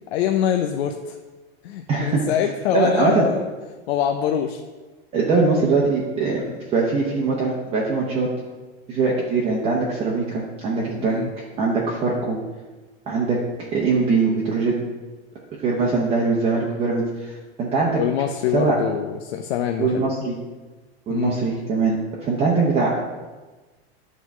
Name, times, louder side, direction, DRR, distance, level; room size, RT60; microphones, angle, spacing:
voice 1, 0.1-1.2 1.6-3.4 3.9-4.6 6.3-6.6 11.0-11.3 17.9-20.1 21.1-21.4, left 9 dB, 85° left, 4 dB, 0.7 m, -24 dB
voice 2, 1.9-2.2 2.7-3.3 5.1-6.4 6.7-8.3 8.9-11.2 11.6-12.4 13.1-13.4 13.7-14.7 15.6-18.0 18.5-18.7 19.8-20.4 21.1-22.9, right 4 dB, 20° right, -4 dB, 0.9 m, -21 dB
9.4 x 4.1 x 6.0 m, 1.2 s
supercardioid pair, 170°, 31 cm